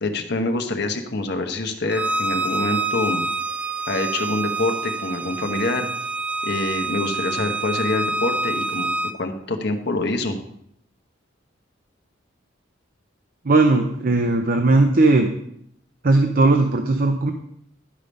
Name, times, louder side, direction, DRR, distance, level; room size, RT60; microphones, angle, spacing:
voice 1, 0.0-3.2 3.9-5.9 6.4-8.9 9.2-10.4, left 2 dB, 60° left, 5 dB, 1.1 m, -25 dB
Bowed string instrument, 1.9-9.1, right 3 dB, 5° right, 0.3 m, -26 dB
voice 2, 13.5-15.3 16.0-17.3, right 2 dB, 50° right, 5 dB, 0.7 m, -17 dB
11.5 x 5.1 x 5.3 m, 0.73 s
head